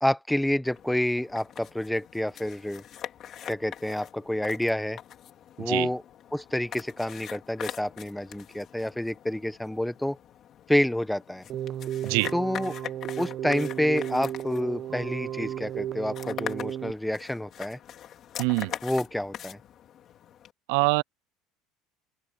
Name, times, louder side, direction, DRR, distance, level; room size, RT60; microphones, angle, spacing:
voice 1, 0.0-2.8 3.4-5.0 5.6-6.0 6.3-10.2 10.7-11.4 12.3-12.7 13.2-17.8 18.8-19.6, left 1 dB, 5° left, 0.9 m, -28 dB
sound 1, 0.6-20.5, left 10 dB, 40° left, 3.3 m, -43 dB
Keyboard (musical), 11.5-16.9, right 11 dB, 40° right, 0.8 m, -34 dB
voice 2, 12.0-12.3 18.4-18.7 20.7-21.0, right 28 dB, 80° right, 0.3 m, -24 dB
open air
cardioid pair, 140°, 0 cm